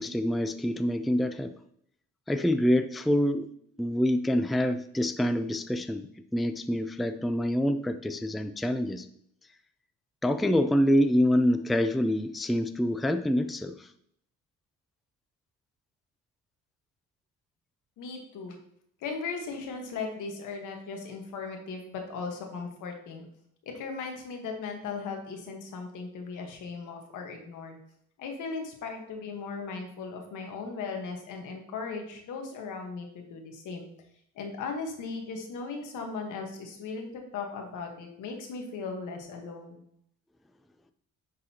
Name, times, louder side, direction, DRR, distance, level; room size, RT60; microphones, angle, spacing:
voice 1, 0.0-1.6 2.3-3.5 3.8-9.1 10.2-13.9, equal, ahead, 9 dB, 0.3 m, -26 dB
voice 2, 18.0-18.6 19.0-23.3 23.6-27.8 28.2-33.9 34.3-37.1 37.3-39.8, left 4 dB, 85° left, 3 dB, 1.4 m, -37 dB
9.7 x 4.1 x 2.9 m, 0.69 s
cardioid pair, 90°, 30 cm